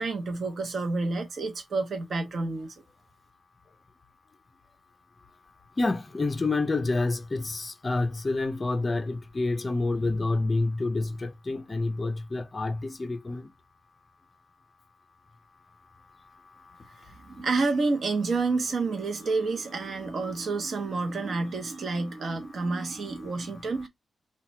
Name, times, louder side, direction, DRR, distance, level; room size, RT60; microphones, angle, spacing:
voice 1, 0.0-2.7 17.0-23.9, right 3 dB, 50° right, 0.8 m, -29 dB
voice 2, 5.8-13.4, left 3 dB, 25° left, 0.5 m, -28 dB
2.9 x 2.2 x 4.0 m
wide cardioid pair, 135°, 0 cm